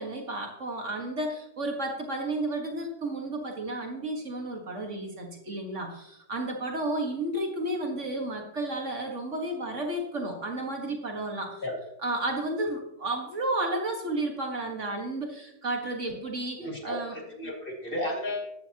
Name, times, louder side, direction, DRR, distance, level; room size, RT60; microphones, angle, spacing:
voice 1, 0.0-11.6 12.0-17.2, right 2 dB, 50° right, 2 dB, 1.9 m, -32 dB
voice 2, 16.6-18.5, left 1 dB, 35° left, 0 dB, 2.5 m, -33 dB
15.0 x 12.0 x 2.9 m, 0.83 s
omnidirectional pair, 1.7 m